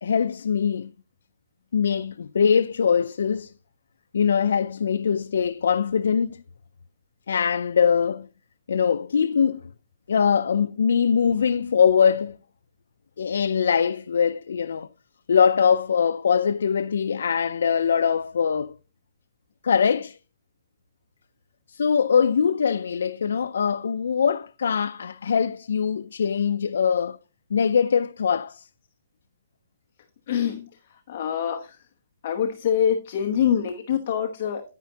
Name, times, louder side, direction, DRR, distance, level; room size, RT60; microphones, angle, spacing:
voice 1, 0.0-0.9 1.7-3.5 4.1-6.4 7.3-8.3 8.7-9.6 10.1-12.4 13.2-14.9 15.3-18.7 19.6-20.2 21.7-27.2 27.5-28.7, left 7 dB, 85° left, 0.4 m, -22 dB
voice 2, 30.3-30.7 31.1-31.8 32.2-34.6, left 8 dB, 40° left, 1.0 m, -25 dB
10.5 x 9.1 x 2.8 m
hypercardioid pair, 180°, 0 cm